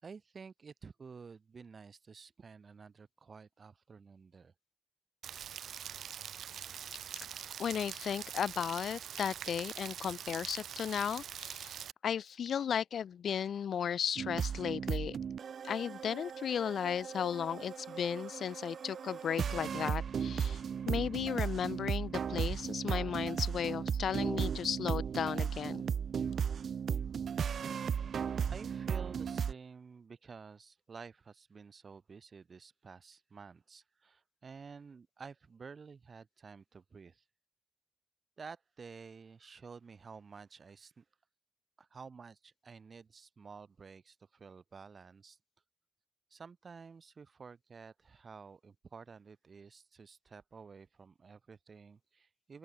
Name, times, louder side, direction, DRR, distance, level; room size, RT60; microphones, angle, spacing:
voice 1, 0.0-4.5 28.5-37.2 38.4-41.0 41.8-45.4 46.3-52.6, right 5 dB, 35° right, 7.7 m, -51 dB
Rain, 5.2-11.9, right 9 dB, 70° right, 2.4 m, -44 dB
voice 2, 7.6-11.7 12.0-15.2 15.6-20.6 20.9-25.8, left 8 dB, 60° left, 0.5 m, -35 dB
sound 1, 14.2-29.5, right 7 dB, 50° right, 0.9 m, -36 dB
open air
wide cardioid pair, 160°, 0 cm